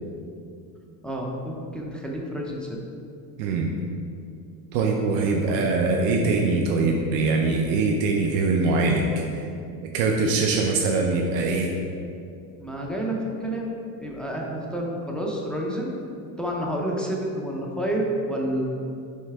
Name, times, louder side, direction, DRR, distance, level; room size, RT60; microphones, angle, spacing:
voice 1, 1.0-2.8 5.4-5.7 12.6-13.7 14.0-15.9 16.4-18.6, right 1 dB, ahead, -1 dB, 0.5 m, -29 dB
voice 2, 3.4-3.7 4.7-9.5 9.9-11.7, right 3 dB, 70° right, 1 dB, 0.8 m, -23 dB
6.5 x 3.2 x 4.7 m, 2.5 s
cardioid pair, 130°, 47 cm